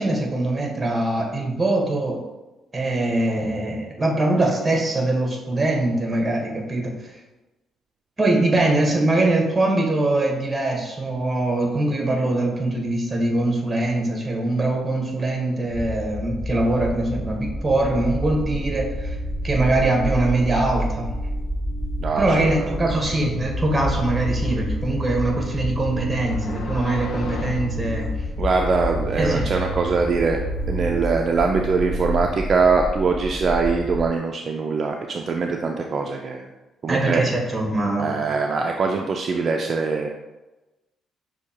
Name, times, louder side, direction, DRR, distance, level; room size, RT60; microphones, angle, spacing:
voice 1, 0.0-2.2 2.7-7.1 8.2-19.2 19.4-21.1 22.2-28.1 29.2-29.5 36.9-38.2, right 2 dB, 20° right, 0 dB, 1.1 m, -22 dB
sound 1, 15.7-34.1, left 1 dB, 15° left, 0.5 m, -29 dB
sound 2, 18.9-32.3, right 4 dB, 30° left, 1.1 m, -36 dB
voice 2, 22.0-22.5 28.4-30.4 30.7-36.5 36.8-37.2 38.0-40.1, right 4 dB, 50° right, 2 dB, 0.3 m, -22 dB
sound 3, 26.1-31.0, left 4 dB, 65° left, 0.4 m, -37 dB
6.1 x 2.7 x 2.8 m, 1.1 s
cardioid pair, 90°, 0 cm